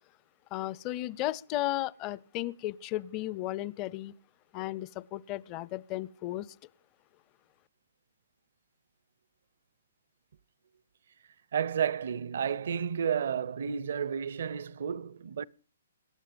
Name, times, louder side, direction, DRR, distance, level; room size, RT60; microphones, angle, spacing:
voice 1, 0.5-4.1 4.5-6.5, left 15 dB, 30° left, 0.6 m, -34 dB
voice 2, 11.5-15.4, right 8 dB, 65° right, 0.7 m, -31 dB
26.0 x 11.5 x 3.5 m
hypercardioid pair, 140°, 0 cm